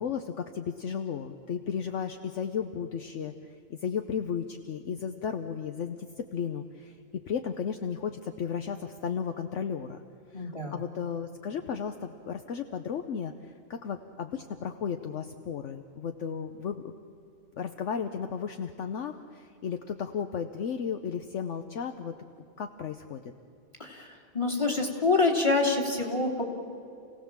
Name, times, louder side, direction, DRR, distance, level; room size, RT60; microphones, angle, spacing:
voice 1, 0.0-7.0 7.3-10.0 10.3-16.9 17.6-23.2, left 7 dB, 65° left, 6 dB, 1.1 m, -34 dB
voice 2, 10.3-10.7 23.8-24.1 24.3-26.4, left 3 dB, 20° left, 0 dB, 2.9 m, -26 dB
29.0 x 17.5 x 7.4 m, 2.6 s
omnidirectional pair, 1.4 m